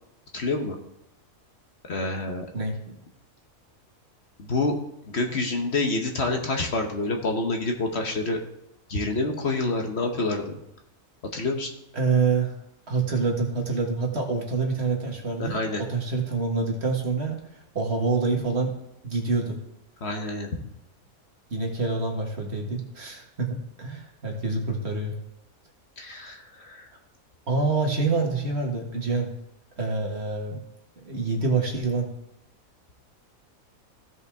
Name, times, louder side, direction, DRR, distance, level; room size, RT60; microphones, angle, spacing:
voice 1, 0.3-0.8 1.9-2.5 4.4-4.7 5.1-8.4 8.9-10.6 11.3-11.7 15.4-15.8 20.0-20.5 26.0-26.9, left 2 dB, 50° left, 3 dB, 1.2 m, -27 dB
voice 2, 2.5-3.0 11.9-12.5 12.9-17.4 17.8-18.7 19.0-19.6 21.5-25.1 27.5-29.3 29.8-30.6 31.0-32.1, right 4 dB, 50° right, 1 dB, 1.8 m, -26 dB
16.0 x 5.5 x 3.5 m, 0.86 s
omnidirectional pair, 1.5 m